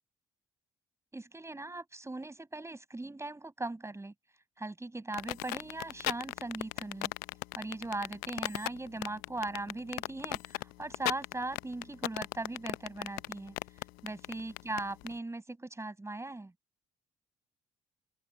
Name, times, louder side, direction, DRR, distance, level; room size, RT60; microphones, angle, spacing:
voice 1, 1.1-4.1 4.6-7.1 7.5-13.5 14.0-16.5, right 2 dB, 15° right, 7.6 m, -39 dB
sound 1, 5.1-15.1, left 23 dB, 65° left, 0.7 m, -36 dB
open air
figure-of-eight pair, 45°, 17 cm